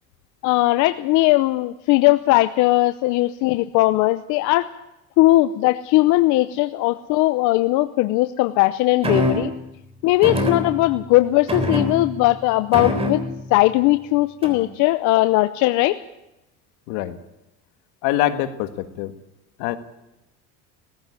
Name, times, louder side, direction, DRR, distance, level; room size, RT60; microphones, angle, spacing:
voice 1, 0.4-4.7 5.2-9.5 10.0-13.2 13.5-16.0, left 18 dB, 65° left, 11 dB, 0.8 m, -18 dB
sound 1, 9.0-9.6 10.2-11.1 11.5-12.3 12.7-13.5 14.4-14.7, left 1 dB, 20° right, 3.6 m, -24 dB
voice 2, 18.0-19.1 19.6-19.8, left 13 dB, 85° left, 10 dB, 1.7 m, -24 dB
17.5 x 15.5 x 9.7 m, 0.91 s
cardioid pair, 140°, 31 cm